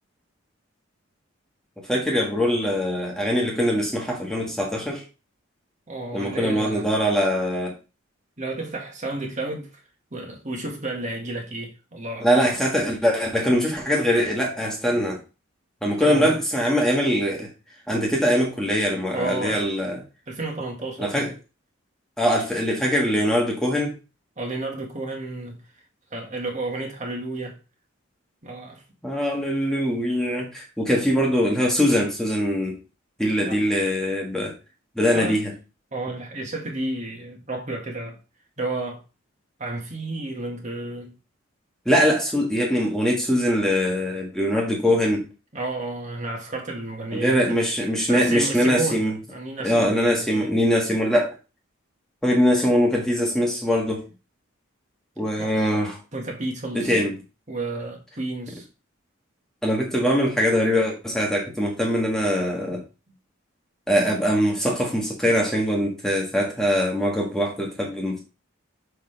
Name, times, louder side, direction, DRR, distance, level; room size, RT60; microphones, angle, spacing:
voice 1, 1.9-5.0 6.1-7.7 12.2-15.2 15.8-17.5 17.9-20.0 21.0-21.3 22.2-24.0 29.0-32.8 33.2-34.5 35.0-35.5 41.8-45.3 47.1-49.1 49.6-51.3 52.2-54.0 55.2-56.0 56.7-57.1 59.6-62.8 63.9-68.2, equal, 5° left, 1.6 m, -22 dB
voice 2, 5.9-6.9 8.4-9.8 10.1-12.3 16.0-16.4 19.1-19.7 20.3-21.3 24.4-25.6 26.1-27.6 28.4-28.8 33.4-33.6 35.1-35.4 35.9-38.2 38.6-39.0 39.6-41.1 45.5-47.6 48.1-50.5 55.4-55.6 56.1-57.0 57.5-58.7, right 2 dB, 35° right, 1.7 m, -31 dB
6.6 x 5.7 x 3.3 m
head